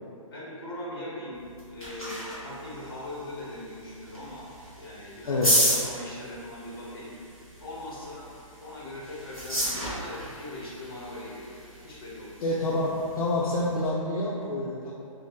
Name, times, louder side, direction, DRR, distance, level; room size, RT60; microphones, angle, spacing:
voice 1, 0.3-1.4 1.7-4.4 4.8-7.1 7.6-8.2 8.6-12.5, left 1 dB, 40° left, -6 dB, 0.8 m, -40 dB
sound 1, 1.3-13.9, equal, 5° right, 0.4 m, -33 dB
voice 2, 5.2-5.6 12.4-14.9, left 2 dB, 80° left, -5 dB, 0.4 m, -28 dB
2.7 x 2.0 x 3.4 m, 2.5 s
hypercardioid pair, 180°, 18 cm